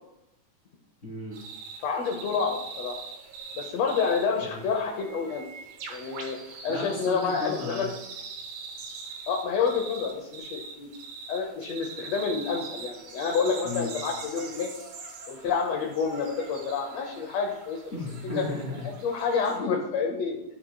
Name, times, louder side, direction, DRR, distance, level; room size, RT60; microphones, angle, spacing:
voice 1, 1.0-1.4 4.4-4.6 6.7-7.9 13.6-13.9 17.9-18.9 19.4-19.6, left 2 dB, 30° left, -5 dB, 1.7 m, -35 dB
sound 1, 1.3-19.6, right 5 dB, 70° right, 2.0 m, -43 dB
voice 2, 1.8-3.0 3.5-5.5 5.9-6.4 6.6-7.9 9.3-10.9 11.3-14.7 15.3-18.0 18.3-18.4 19.0-20.4, left 5 dB, 80° left, 1 dB, 1.5 m, -28 dB
12.0 x 5.8 x 2.2 m, 0.87 s
omnidirectional pair, 3.8 m